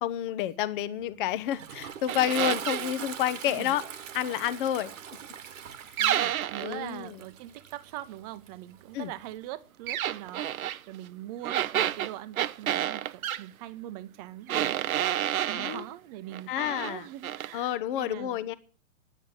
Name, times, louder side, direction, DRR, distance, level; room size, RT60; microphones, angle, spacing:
voice 1, 0.0-3.8 4.1-4.9 6.6-7.2 8.9-9.1 15.6-15.9 16.5-17.0 17.5-18.5, left 11 dB, 40° left, 14 dB, 0.8 m, -29 dB
Toilet flush, 1.0-9.4, right 8 dB, 65° right, 1.3 m, -43 dB
sound 1, 2.1-2.9 6.0-6.8 9.9-10.8 11.4-13.4 14.5-15.8 16.3-16.9 17.2-17.5, right 11 dB, 80° right, 0.6 m, -29 dB
voice 2, 6.0-18.4, right 14 dB, 30° right, 15 dB, 0.7 m, -42 dB
10.0 x 7.9 x 8.0 m, 0.41 s
hypercardioid pair, 130°, 41 cm